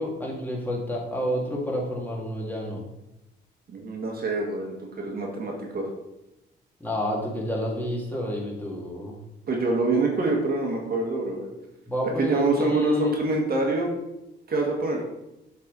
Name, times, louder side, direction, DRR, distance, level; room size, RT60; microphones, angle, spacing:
voice 1, 0.0-2.9 6.8-9.2 11.9-13.1, left 1 dB, 10° left, -3 dB, 2.3 m, -29 dB
voice 2, 3.7-5.9 9.5-11.5 12.2-13.9 14.5-15.0, right 3 dB, 50° right, 0 dB, 1.7 m, -26 dB
7.4 x 4.7 x 4.0 m, 0.91 s
cardioid pair, 90°, 20 cm